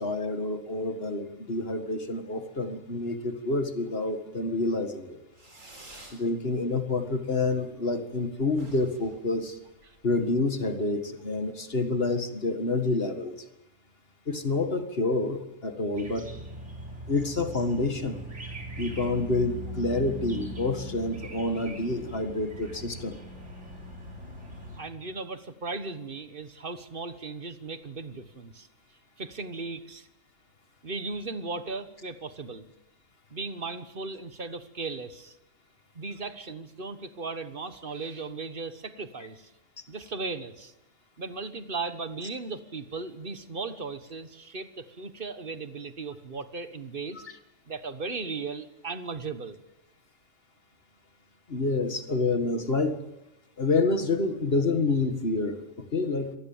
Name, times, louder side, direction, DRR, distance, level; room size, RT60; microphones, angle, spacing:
voice 1, 0.0-5.2 6.1-9.6 10.0-13.3 14.3-16.3 17.1-18.2 18.8-23.2 51.5-53.0 53.6-55.6 55.9-56.4, left 3 dB, 50° left, 8 dB, 2.1 m, -28 dB
Fireworks, 5.3-6.3 6.6-7.2 7.4-7.5 7.8-8.2 8.5-10.1, right 1 dB, 90° right, 5.2 m, -50 dB
sound 1, 16.0-24.8, equal, 65° right, 4.1 m, -40 dB
voice 2, 24.8-28.7 29.2-30.1 30.8-32.7 33.3-35.4 35.9-39.5 39.9-40.7 41.2-47.2 47.7-49.6, right 4 dB, 45° right, 11 dB, 1.5 m, -37 dB
25.5 x 19.0 x 7.3 m, 0.88 s
omnidirectional pair, 1.3 m